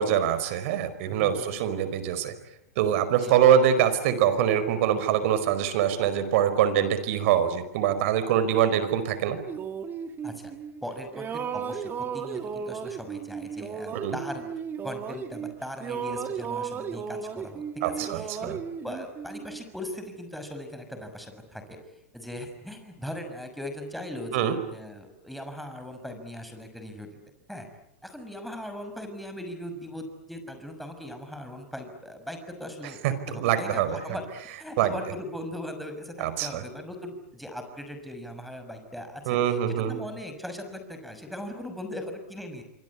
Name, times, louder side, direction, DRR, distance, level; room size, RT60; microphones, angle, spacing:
voice 1, 0.0-2.3 2.8-9.4 13.9-14.2 17.8-18.6 24.3-24.5 33.0-34.0 34.8-34.9 36.2-36.6 39.3-39.9, right 9 dB, 60° right, 13 dB, 4.9 m, -24 dB
voice 2, 1.1-1.6 3.2-3.3 10.2-10.5 10.8-14.5 14.8-18.6 18.8-21.8 22.1-27.1 27.5-27.7 28.0-33.0 33.3-34.2 34.6-42.6, left 1 dB, ahead, 5 dB, 6.2 m, -39 dB
sound 1, 9.5-10.8 11.1-15.5 15.8-19.6, right 7 dB, 25° right, 2.2 m, -35 dB
26.5 x 25.5 x 8.6 m, 0.83 s
hypercardioid pair, 125°, 8 cm